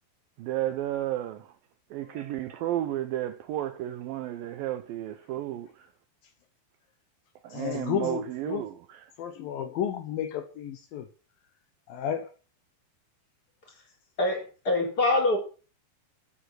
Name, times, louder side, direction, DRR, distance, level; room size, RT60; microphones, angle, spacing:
voice 1, 0.4-1.5 1.9-5.9 7.4-9.1, right 13 dB, 75° right, 2.3 m, -33 dB
voice 2, 7.5-8.6 9.2-11.1 11.9-12.3, left 9 dB, 70° left, 2.6 m, -32 dB
voice 3, 14.2-15.4, left 2 dB, 25° left, 4.0 m, -24 dB
14.0 x 8.7 x 6.2 m
omnidirectional pair, 4.7 m